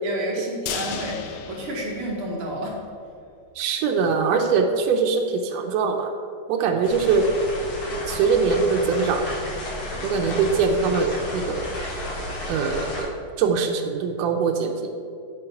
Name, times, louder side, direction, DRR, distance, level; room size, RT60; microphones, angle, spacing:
voice 1, 0.0-2.8, right 1 dB, 60° right, -2 dB, 1.7 m, -30 dB
sound 1, 0.7-2.8 3.1-3.2 3.6-3.7, left 7 dB, 85° left, 1.5 m, -35 dB
voice 2, 3.5-6.1 6.5-7.3 7.9-9.4 10.0-11.7 12.5-14.9, right 5 dB, 85° right, 3 dB, 1.5 m, -22 dB
sound 2, 6.8-13.0, left 1 dB, 65° left, 3.1 m, -32 dB
8.8 x 3.9 x 5.7 m, 2.3 s
omnidirectional pair, 3.7 m